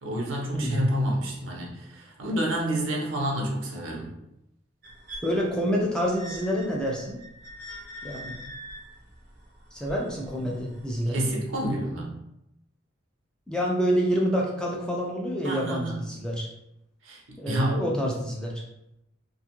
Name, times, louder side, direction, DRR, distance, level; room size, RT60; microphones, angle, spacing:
voice 1, 0.0-4.1 11.1-12.1 15.4-16.0 17.0-17.9, right 1 dB, 80° right, -1 dB, 0.7 m, -29 dB
voice 2, 0.5-0.9 5.2-7.2 8.0-8.4 9.7-11.4 13.5-16.5 17.4-18.6, equal, 5° left, -3 dB, 0.3 m, -27 dB
sound 1, 4.8-10.9 11.7-11.8, equal, 45° right, 0.6 m, -44 dB
2.5 x 2.3 x 2.9 m, 0.83 s
head